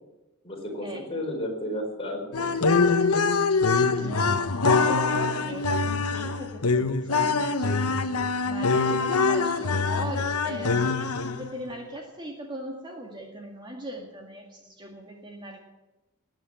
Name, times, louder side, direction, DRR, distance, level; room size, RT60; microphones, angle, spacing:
voice 1, 0.4-2.8, left 1 dB, 25° left, 0 dB, 4.5 m, -33 dB
sound 1, 2.3-11.6, left 4 dB, 75° left, 1.0 m, -24 dB
voice 2, 3.7-7.8 8.4-15.6, right 1 dB, 20° right, 1 dB, 2.0 m, -39 dB
20.0 x 9.4 x 7.7 m, 1.1 s
head